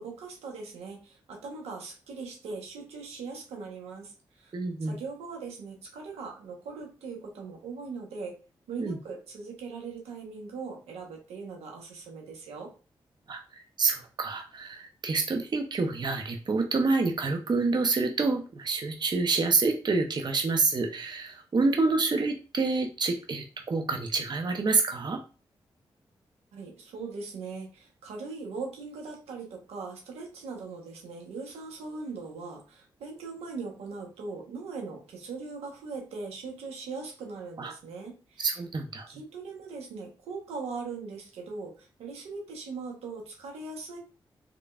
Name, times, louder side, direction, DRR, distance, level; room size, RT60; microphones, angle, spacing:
voice 1, 0.0-8.3 8.7-12.7 26.5-38.5 39.1-44.0, right 4 dB, 85° right, 1 dB, 1.1 m, -40 dB
voice 2, 4.5-4.9 8.8-9.0 13.3-13.4 13.8-25.2 37.6-37.7 38.4-39.1, right 3 dB, 45° right, 4 dB, 0.7 m, -27 dB
3.6 x 3.2 x 2.4 m, 0.36 s
supercardioid pair, 40°, 10 cm